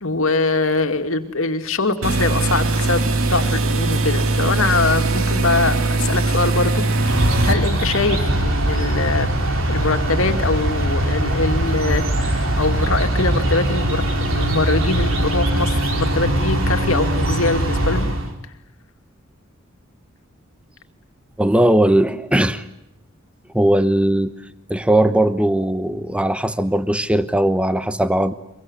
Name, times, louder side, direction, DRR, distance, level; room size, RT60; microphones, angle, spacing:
voice 1, 0.0-9.3 9.7-18.1, left 3 dB, 70° left, 6 dB, 2.4 m, -23 dB
sound 1, 2.0-7.5, right 3 dB, 85° right, 2.2 m, -20 dB
sound 2, 6.9-18.3, right 1 dB, 65° right, 4.0 m, -21 dB
voice 2, 21.4-22.6 23.5-24.3 24.7-28.3, right 1 dB, 5° right, 12 dB, 1.0 m, -18 dB
24.5 x 23.5 x 9.8 m, 0.80 s
head